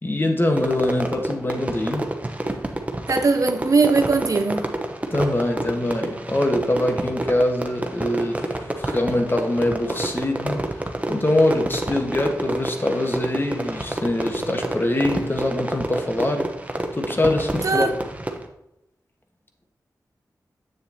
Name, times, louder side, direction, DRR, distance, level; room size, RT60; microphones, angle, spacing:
voice 1, 0.0-2.1 5.1-16.5 16.9-17.9, left 1 dB, 30° left, 1.3 m, -23 dB
Fireworks, 0.6-18.5, right 1 dB, 20° right, 0.9 m, -29 dB
voice 2, 3.1-4.7 17.6-18.0, right 4 dB, 55° right, 0.7 m, -20 dB
7.8 x 6.9 x 2.8 m
cardioid pair, 45°, 7 cm